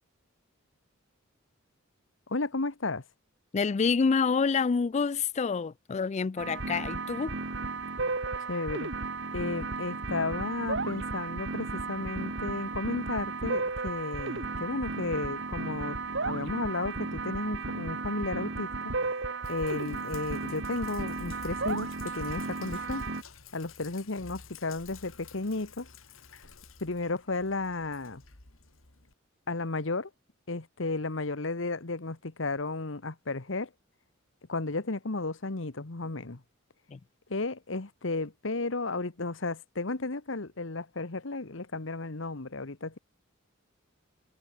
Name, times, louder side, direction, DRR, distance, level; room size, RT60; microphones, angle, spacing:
voice 1, 2.3-3.0 8.5-8.9 9.3-18.9 19.5-23.0 23.5-25.9 26.8-28.2 29.5-30.1 30.5-33.7 34.5-36.4 37.3-43.0, left 3 dB, 65° left, 1.3 m, -33 dB
voice 2, 3.5-7.4 36.9-37.0, left 5 dB, 35° left, 0.4 m, -27 dB
sound 1, 6.4-23.2, right 3 dB, 60° right, 2.2 m, -34 dB
Sink (filling or washing), 19.4-29.1, left 5 dB, 80° left, 3.0 m, -52 dB
head